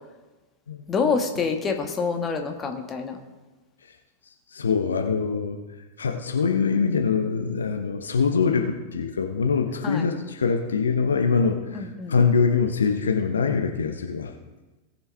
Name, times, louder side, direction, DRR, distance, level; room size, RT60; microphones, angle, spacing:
voice 1, 0.9-3.2 9.8-10.1 11.7-12.2, left 5 dB, 20° left, 4 dB, 1.5 m, -26 dB
voice 2, 4.5-5.6 6.0-14.3, left 5 dB, 70° left, 4 dB, 0.9 m, -23 dB
18.5 x 7.0 x 3.5 m, 1.2 s
figure-of-eight pair, 90°, 0 cm